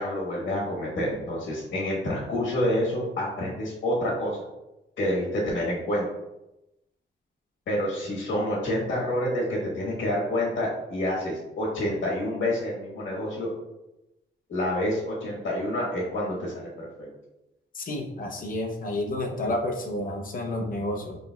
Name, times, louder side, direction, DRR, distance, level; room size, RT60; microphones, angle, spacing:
voice 1, 0.0-4.4 5.0-6.1 7.7-13.5 14.5-17.1, left 1 dB, 70° left, -4 dB, 1.3 m, -28 dB
voice 2, 17.7-21.2, left 1 dB, 45° left, 1 dB, 0.7 m, -30 dB
5.0 x 3.2 x 2.2 m, 0.93 s
wide cardioid pair, 165°, 20 cm